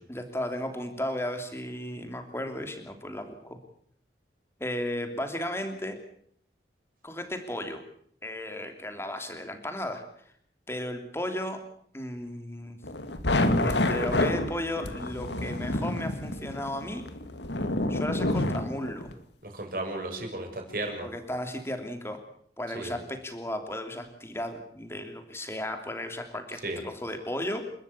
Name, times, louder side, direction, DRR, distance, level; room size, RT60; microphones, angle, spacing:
voice 1, 0.1-3.6 4.6-6.0 7.0-7.8 8.2-10.0 10.7-11.6 11.9-12.8 13.6-17.0 17.9-19.1 21.0-22.2 22.6-27.7, left 1 dB, 15° left, 6 dB, 3.0 m, -34 dB
sound 1, 12.8-19.1, left 1 dB, 85° left, 2.1 m, -28 dB
voice 2, 19.4-21.1 22.7-22.9 26.6-26.8, right 2 dB, 50° right, 3 dB, 6.7 m, -34 dB
29.5 x 13.0 x 8.4 m, 0.64 s
head